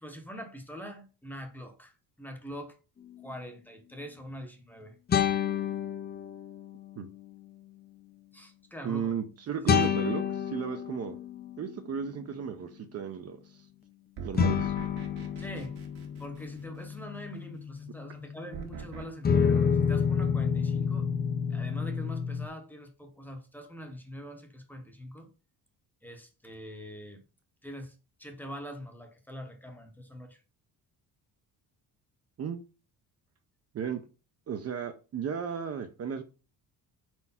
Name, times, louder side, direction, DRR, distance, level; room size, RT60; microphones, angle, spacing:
voice 1, 0.0-2.7 3.2-4.9 8.3-9.1 9.7-9.9 15.4-15.7 16.2-21.1 21.5-25.3 26.0-27.2 27.6-30.4, equal, 5° left, 0.8 m, -43 dB
sound 1, 3.1-3.3 5.1-6.8 9.7-12.1 14.3-18.7 19.2-22.5, left 7 dB, 25° left, 0.5 m, -29 dB
voice 2, 8.8-11.2 11.6-13.7 14.2-14.7 32.4-32.6 33.7-34.0 34.5-36.2, right 7 dB, 40° right, 0.6 m, -34 dB
sound 2, 14.2-17.0 18.5-19.0, right 7 dB, 75° right, 1.7 m, -43 dB
4.6 x 4.4 x 5.5 m
cardioid pair, 180°, 38 cm